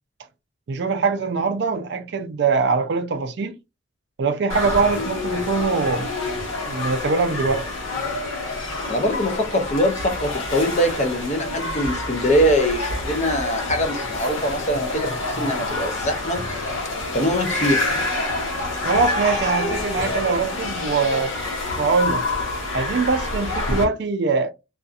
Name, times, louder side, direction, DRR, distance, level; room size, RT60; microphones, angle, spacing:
voice 1, 0.7-3.6 4.2-6.1 6.6-7.7 18.8-21.4 21.8-22.2 22.7-24.5, right 4 dB, 55° right, 0.3 m, -22 dB
sound 1, 4.5-23.8, left 2 dB, 75° left, 1.0 m, -27 dB
voice 2, 8.9-16.4 17.1-17.8, equal, 35° left, 0.5 m, -23 dB
2.7 x 2.4 x 2.3 m
head